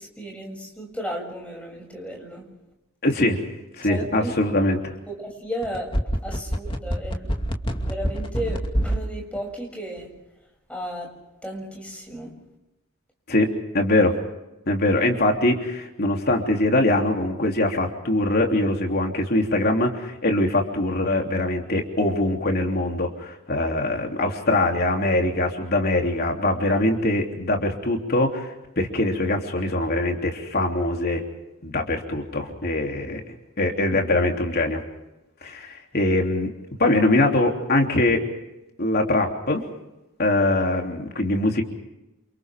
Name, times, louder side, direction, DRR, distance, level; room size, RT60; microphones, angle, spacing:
voice 1, 0.0-2.5 3.9-4.3 5.1-5.9 6.2-7.3 7.8-10.1 10.7-11.2 11.4-12.4, equal, 5° left, 0 dB, 7.3 m, -34 dB
voice 2, 3.0-3.4 3.8-4.9 13.3-14.2 14.7-31.2 31.6-34.8 35.4-36.5 36.8-38.2 38.8-39.6 40.2-41.6, left 2 dB, 50° left, 2 dB, 3.3 m, -22 dB
sound 1, 5.6-9.0 9.4-9.5, equal, 25° left, 2.5 m, -25 dB
29.5 x 28.5 x 3.7 m, 0.96 s
head